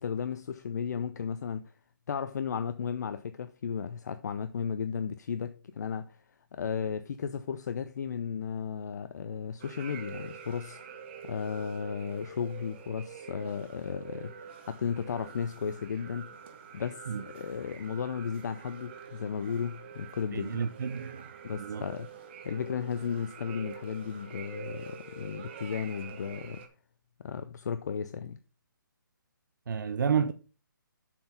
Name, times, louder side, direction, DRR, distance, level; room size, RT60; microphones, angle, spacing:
voice 1, 0.0-1.7 2.1-6.2 6.5-11.0 11.2-16.3 16.7-20.6 21.4-22.1 22.4-26.6 27.2-28.4, left 6 dB, 50° left, 0.5 m, -34 dB
sound 1, 9.6-26.7, right 7 dB, 30° right, 0.9 m, -46 dB
voice 2, 20.3-21.2 21.6-21.8 29.7-30.3, right 7 dB, 65° right, 0.5 m, -30 dB
7.1 x 4.5 x 5.5 m
hypercardioid pair, 160°, 11 cm